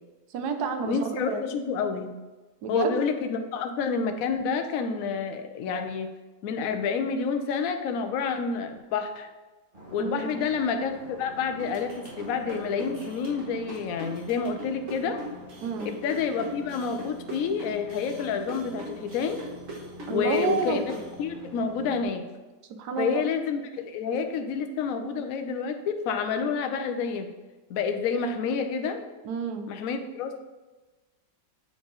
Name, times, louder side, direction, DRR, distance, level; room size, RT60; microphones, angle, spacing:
voice 1, 0.3-1.4 2.6-3.0 10.0-10.4 15.6-15.9 20.1-20.8 22.8-23.2 29.2-29.7, right 5 dB, 70° right, 6 dB, 1.2 m, -29 dB
voice 2, 0.8-2.1 2.7-6.1 6.4-9.3 9.9-15.2 15.8-19.4 20.1-20.8 21.2-22.2 23.0-27.3 27.7-29.0 29.7-30.4, left 5 dB, 65° left, 6 dB, 0.9 m, -29 dB
sound 1, 9.7-22.0, left 1 dB, 30° right, 1.4 m, -46 dB
sound 2, 11.6-21.1, right 1 dB, 50° right, 1.5 m, -41 dB
7.5 x 3.6 x 3.9 m, 1.2 s
omnidirectional pair, 1.9 m